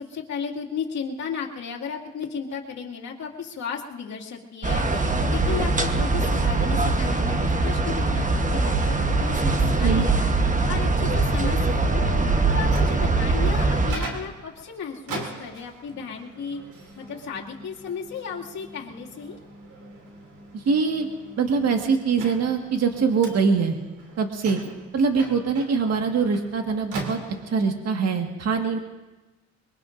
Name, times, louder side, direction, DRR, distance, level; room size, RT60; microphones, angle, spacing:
voice 1, 0.0-7.4 7.6-10.3 10.6-12.0 12.4-16.6 17.0-19.4 24.5-24.7, left 6 dB, 65° left, -2 dB, 2.4 m, -34 dB
sound 1, 4.6-13.9, right 3 dB, 25° right, 1.2 m, -22 dB
Microwave oven, 12.5-27.8, right 2 dB, 85° right, 3.0 m, -41 dB
voice 2, 20.5-21.1 21.4-23.8 24.2-24.6 24.9-27.2 27.5-28.8, right 5 dB, 55° right, 3 dB, 1.8 m, -23 dB
23.5 x 23.0 x 2.6 m, 1.1 s
cardioid pair, 90°, 30 cm